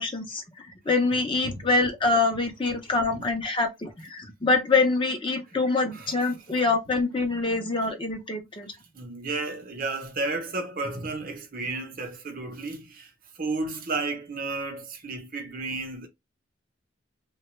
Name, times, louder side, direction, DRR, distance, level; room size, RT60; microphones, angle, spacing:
voice 1, 0.0-8.7, left 3 dB, 25° left, 0.6 m, -25 dB
voice 2, 8.9-16.1, right 3 dB, 45° right, 0.7 m, -33 dB
3.2 x 2.2 x 3.0 m
head